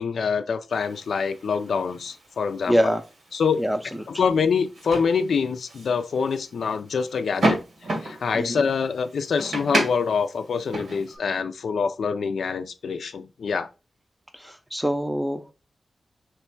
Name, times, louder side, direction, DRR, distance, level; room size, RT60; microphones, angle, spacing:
voice 1, 0.0-3.0 3.3-3.6 4.1-7.6 8.0-13.7, left 5 dB, 85° left, 0.4 m, -25 dB
sound 1, 0.7-11.2, right 1 dB, 85° right, 1.5 m, -32 dB
voice 2, 2.7-3.0 3.6-3.8 8.3-8.5 14.3-15.5, equal, 5° right, 0.5 m, -24 dB
3.3 x 3.0 x 4.5 m
wide cardioid pair, 135°, 0 cm